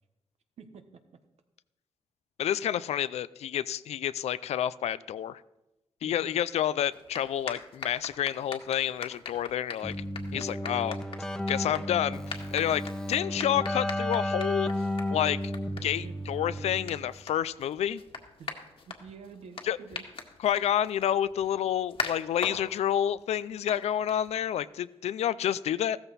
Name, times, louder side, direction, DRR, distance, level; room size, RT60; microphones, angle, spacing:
voice 1, 0.6-1.2 6.0-6.4 16.0-16.2 18.4-20.0, right 5 dB, 80° right, 7 dB, 1.3 m, -49 dB
voice 2, 2.4-5.4 6.0-10.0 10.3-11.0 11.5-12.8 13.1-14.7 15.1-15.5 15.8-18.0 19.7-19.8 20.4-26.0, left 10 dB, 90° left, 17 dB, 0.5 m, -29 dB
sound 1, 6.9-24.6, left 5 dB, 60° left, 1.8 m, -43 dB
Keyboard (musical), 9.8-17.1, left 1 dB, 5° left, 0.8 m, -33 dB
15.0 x 13.5 x 4.2 m, 0.95 s
cardioid pair, 85°, 11 cm